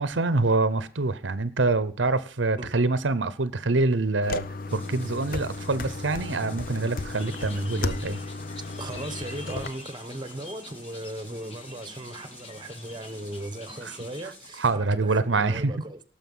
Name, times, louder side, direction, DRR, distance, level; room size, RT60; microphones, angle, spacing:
voice 1, 0.0-4.4 4.7-8.2 13.8-13.9 14.6-15.7, right 3 dB, 85° right, 0.9 m, -25 dB
sound 1, 4.2-9.7, left 3 dB, 50° left, 0.7 m, -34 dB
sound 2, 4.7-14.7, left 1 dB, 10° left, 4.5 m, -50 dB
sound 3, 7.1-14.2, left 3 dB, 35° left, 2.0 m, -46 dB
voice 2, 8.8-16.0, right 1 dB, 25° right, 1.1 m, -37 dB
17.5 x 6.9 x 5.5 m
head